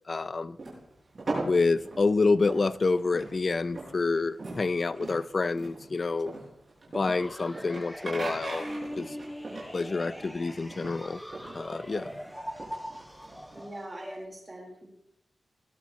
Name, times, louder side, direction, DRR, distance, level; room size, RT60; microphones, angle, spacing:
voice 1, 0.1-0.6 1.4-6.3 6.9-8.7 9.0-9.2 9.7-11.2 11.5-12.1, left 3 dB, 35° left, 16 dB, 0.5 m, -28 dB
sound 1, 0.6-13.6, right 2 dB, 35° right, 7.0 m, -40 dB
sound 2, 7.2-14.3, equal, 5° left, 0.7 m, -41 dB
voice 2, 13.5-14.9, right 1 dB, 20° right, -2 dB, 4.4 m, -42 dB
21.0 x 12.0 x 3.2 m, 0.77 s
wide cardioid pair, 160°, 0 cm